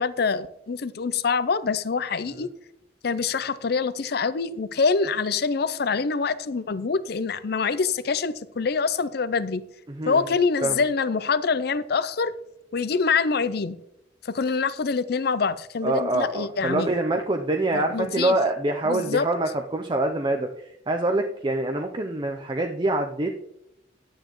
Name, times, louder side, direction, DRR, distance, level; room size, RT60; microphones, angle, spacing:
voice 1, 0.0-2.5 3.0-9.6 10.1-12.3 12.7-13.8 14.2-16.9 17.7-18.4 18.8-19.3, left 5 dB, 55° left, 15 dB, 0.5 m, -25 dB
voice 2, 9.9-10.2 10.6-10.8 15.8-23.4, right 2 dB, 25° right, 4 dB, 0.6 m, -25 dB
11.0 x 9.0 x 3.1 m, 0.79 s
head